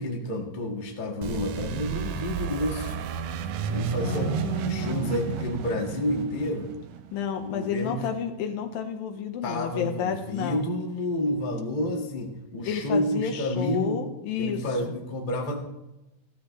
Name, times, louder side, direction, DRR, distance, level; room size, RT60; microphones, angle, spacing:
voice 1, 0.0-3.0 3.7-6.7 7.4-8.0 9.4-14.0 14.4-15.6, left 1 dB, 25° left, 0 dB, 1.0 m, -30 dB
sound 1, 1.2-7.8, right 7 dB, 75° right, 1.9 m, -32 dB
voice 2, 4.0-5.3 7.1-10.6 12.7-14.9, left 7 dB, 80° left, 5 dB, 2.9 m, -31 dB
15.5 x 13.0 x 3.3 m, 0.94 s
omnidirectional pair, 4.1 m